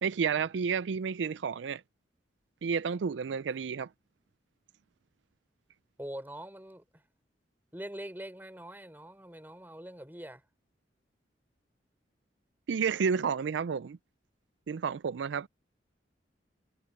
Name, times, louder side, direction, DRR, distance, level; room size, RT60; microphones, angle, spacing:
voice 1, 0.0-1.8 2.6-3.9 12.7-14.0 14.7-15.5, right 6 dB, 85° right, 0.4 m, -31 dB
voice 2, 6.0-7.0 7.7-10.4, right 1 dB, 10° right, 4.2 m, -43 dB
head